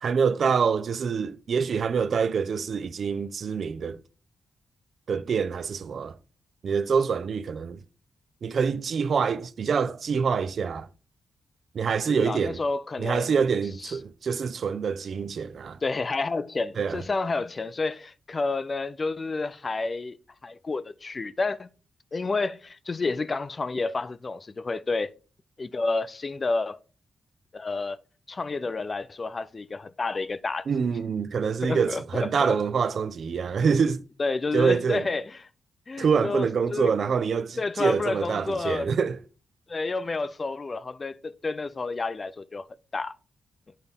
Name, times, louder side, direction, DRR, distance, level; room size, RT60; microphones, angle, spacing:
voice 1, 0.0-4.0 5.1-6.2 6.6-7.8 8.4-10.9 11.7-12.6 13.0-15.8 16.8-17.0 30.7-34.0 34.5-35.1 36.0-39.2, right 6 dB, 60° right, 0.4 m, -26 dB
voice 2, 12.1-13.4 13.8-14.0 15.8-20.2 20.4-21.7 22.1-25.1 25.6-26.8 27.5-28.0 28.3-30.7 31.6-32.6 34.2-35.4 35.9-36.9 37.6-38.9 39.7-42.7 42.9-43.2, left 3 dB, 35° left, 0.4 m, -30 dB
8.9 x 4.1 x 3.6 m
cardioid pair, 100°, 0 cm